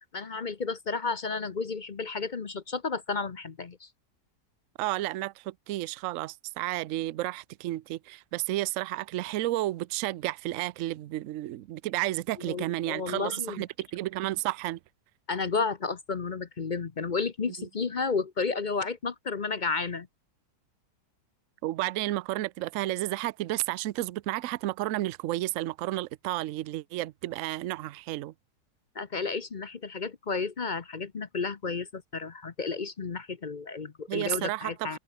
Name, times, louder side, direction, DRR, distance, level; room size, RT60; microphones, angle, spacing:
voice 1, 0.1-3.9 12.5-13.6 15.3-20.1 28.9-35.0, left 4 dB, 40° left, 0.7 m, -32 dB
voice 2, 4.8-14.8 17.6-17.7 21.6-28.3 34.1-35.0, right 16 dB, 65° right, 0.8 m, -32 dB
omnidirectional pair, 1.9 m